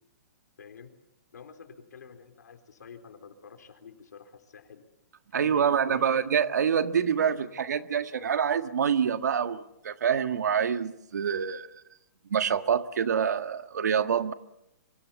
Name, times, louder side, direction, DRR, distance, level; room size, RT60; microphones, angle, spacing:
voice 1, 0.6-1.0 1.3-4.9 5.3-6.2, left 6 dB, 85° left, 7 dB, 4.1 m, -48 dB
voice 2, 5.3-11.7 12.3-14.3, right 7 dB, 80° right, 10 dB, 1.6 m, -26 dB
28.0 x 25.0 x 7.2 m, 0.82 s
hypercardioid pair, 165°, 9 cm